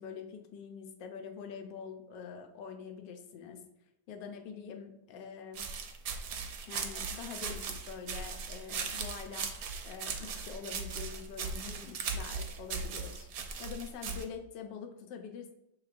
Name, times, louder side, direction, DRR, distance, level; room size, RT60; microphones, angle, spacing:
voice 1, 0.0-3.6 4.1-5.6 6.7-9.5 9.8-15.5, left 6 dB, 80° left, 4 dB, 1.3 m, -45 dB
sound 1, 5.5-14.2, right 5 dB, 70° right, 1.0 m, -38 dB
6.6 x 3.1 x 2.4 m, 0.92 s
omnidirectional pair, 1.9 m